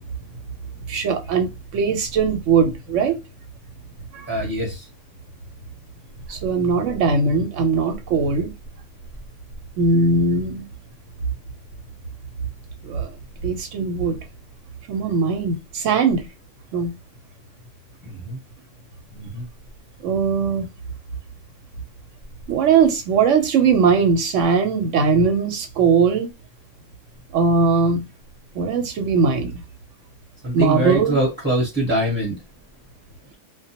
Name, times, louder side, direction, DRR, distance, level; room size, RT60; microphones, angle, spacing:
voice 1, 0.9-3.2 4.1-4.4 6.3-8.5 9.8-10.6 12.8-13.1 13.4-14.2 14.9-16.2 16.7-16.9 20.0-20.7 22.5-26.3 27.3-28.0 28.5-29.5 30.5-31.2, right 5 dB, 85° right, 1.0 m, -20 dB
voice 2, 4.3-4.8 18.2-18.4 19.1-19.4 30.4-32.3, right 1 dB, 10° right, 0.9 m, -23 dB
2.2 x 2.1 x 2.8 m
omnidirectional pair, 1.3 m